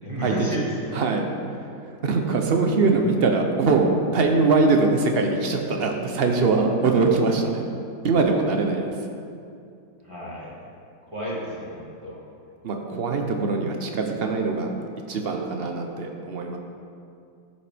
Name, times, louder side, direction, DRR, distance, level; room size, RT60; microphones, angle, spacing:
voice 1, 0.0-1.0 10.0-10.5 11.0-12.2, equal, 20° right, -7 dB, 1.8 m, -31 dB
voice 2, 0.9-1.3 1.9-7.6 8.0-8.9 12.6-14.7 15.1-16.6, right 3 dB, 60° right, 3 dB, 0.6 m, -22 dB
13.0 x 5.7 x 3.4 m, 2.5 s
omnidirectional pair, 1.8 m